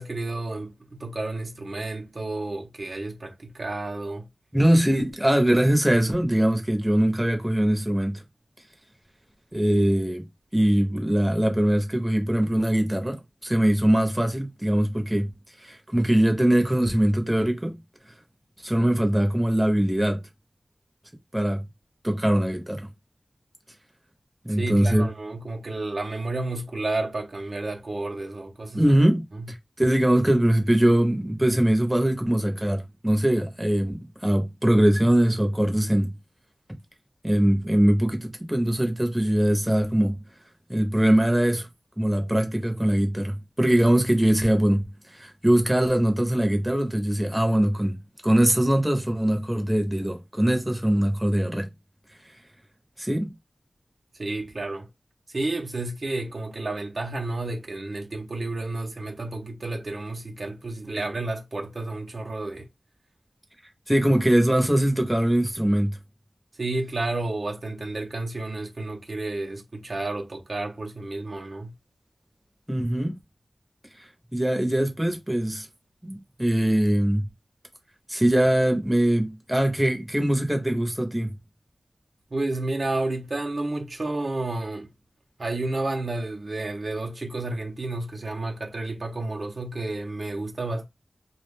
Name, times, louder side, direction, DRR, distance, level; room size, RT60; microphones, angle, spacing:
voice 1, 0.0-4.3 24.5-28.8 29.4-29.5 54.2-54.9 55.3-62.7 66.6-71.7 82.3-84.9 85.4-90.8, right 2 dB, 60° right, 0.6 m, -31 dB
voice 2, 4.5-8.2 9.5-10.3 10.5-15.3 15.6-17.8 18.6-20.2 21.3-21.6 22.0-22.9 24.4-25.1 28.7-36.1 37.2-40.2 40.7-41.7 42.0-44.8 45.1-51.7 53.0-53.3 63.9-66.0 72.7-73.2 74.3-75.7 76.0-77.3 78.1-81.3, right 1 dB, 10° right, 0.8 m, -22 dB
2.3 x 2.1 x 3.3 m
wide cardioid pair, 75°, 0 cm